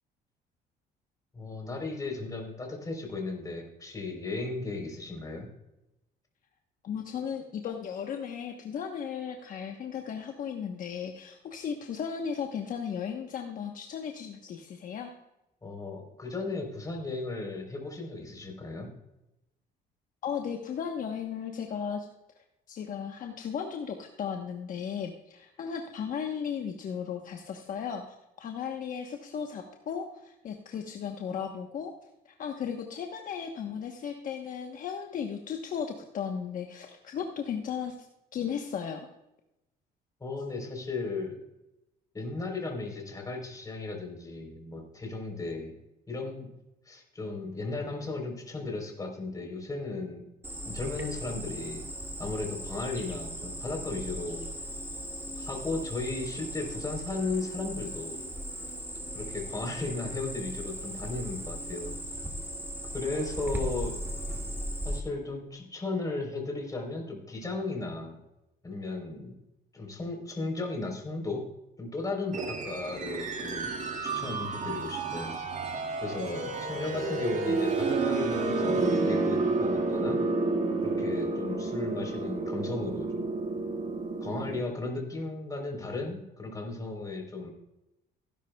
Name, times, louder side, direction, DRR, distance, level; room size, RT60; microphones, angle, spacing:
voice 1, 1.3-5.5 15.6-18.9 40.2-41.4 42.1-45.7 46.1-46.5 46.9-50.2 50.6-51.8 52.2-54.6 55.4-58.2 59.1-61.9 62.9-64.0 64.8-68.2 68.6-69.4 69.7-71.4 71.8-73.7 74.0-75.4 76.0-80.2 80.8-83.3 84.2-87.5, left 3 dB, 20° left, 2 dB, 3.7 m, -35 dB
voice 2, 6.8-15.1 20.2-22.1 22.7-31.9 32.2-37.9 38.3-39.1, left 7 dB, 55° left, 3 dB, 1.1 m, -35 dB
Cricket, 50.4-65.0, equal, 15° right, 1.9 m, -38 dB
sound 1, 72.3-84.6, right 3 dB, 45° right, 1.9 m, -30 dB
16.5 x 10.5 x 2.3 m, 0.91 s
cardioid pair, 110°, 17 cm